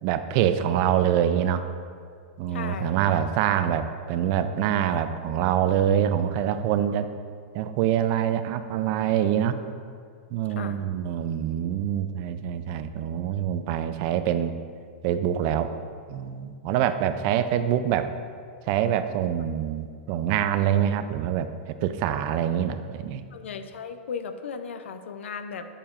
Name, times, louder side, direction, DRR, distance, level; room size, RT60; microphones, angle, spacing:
voice 1, 0.0-1.6 2.4-7.1 7.5-9.6 10.3-14.6 15.0-15.7 16.1-18.1 18.7-23.3, right 10 dB, 40° right, 10 dB, 0.4 m, -25 dB
voice 2, 2.5-3.0 10.6-10.8 23.3-25.7, left 6 dB, 85° left, 9 dB, 0.5 m, -36 dB
8.5 x 6.6 x 2.5 m, 2.1 s
supercardioid pair, 150°, 6 cm